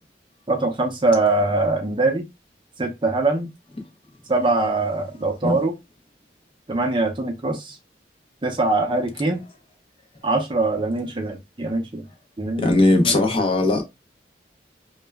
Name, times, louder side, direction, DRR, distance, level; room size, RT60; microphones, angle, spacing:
voice 1, 0.5-2.2 2.8-3.5 4.3-5.7 6.7-7.8 8.4-9.4 10.2-12.1 12.4-12.8 13.0-13.2, right 2 dB, 25° right, 0.5 m, -22 dB
voice 2, 12.6-13.8, left 2 dB, 30° left, 0.6 m, -18 dB
2.3 x 2.0 x 3.3 m
head